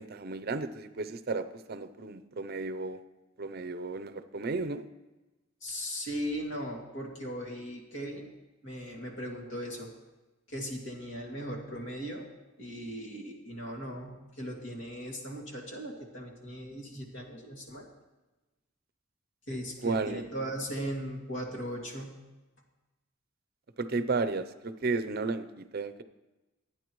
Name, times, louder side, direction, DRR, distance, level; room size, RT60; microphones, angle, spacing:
voice 1, 0.0-3.0 3.4-4.8 19.8-20.2 23.8-26.0, right 3 dB, 50° right, 12 dB, 0.6 m, -33 dB
voice 2, 5.6-8.3 8.6-9.9 10.5-12.2 12.6-17.9 19.5-22.1, equal, 65° left, 0 dB, 2.4 m, -38 dB
23.5 x 9.2 x 3.1 m, 1.1 s
head